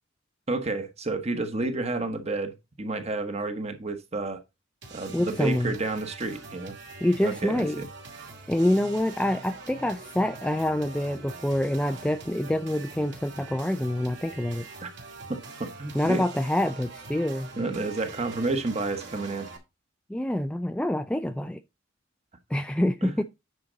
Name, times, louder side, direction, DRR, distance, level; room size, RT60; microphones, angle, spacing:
voice 1, 0.5-4.4 4.9-6.7 7.2-7.9 14.8-14.9 15.6-16.2 17.6-19.5 23.0-23.2, right 3 dB, 30° right, 1.2 m, -30 dB
sound 1, 4.8-19.6, right 3 dB, 60° right, 2.4 m, -43 dB
voice 2, 5.1-5.8 7.0-7.8 8.5-14.7 15.9-17.5 20.1-21.6 22.5-23.2, left 1 dB, 5° left, 0.3 m, -26 dB
9.6 x 5.1 x 3.9 m
head